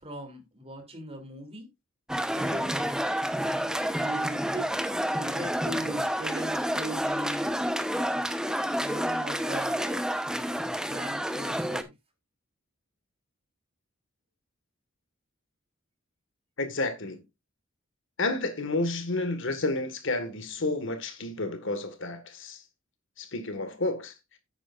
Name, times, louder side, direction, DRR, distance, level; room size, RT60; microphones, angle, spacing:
voice 1, 0.0-1.7 2.3-2.8 4.0-4.7 5.1-7.5 8.1-8.3 8.8-10.1 10.8-11.9, right 1 dB, 30° right, 3.1 m, -39 dB
sound 1, 2.1-11.8, equal, 5° right, 0.9 m, -29 dB
voice 2, 16.6-17.2 18.2-22.6 23.2-24.1, left 2 dB, 65° left, 1.8 m, -30 dB
10.5 x 9.1 x 2.5 m
head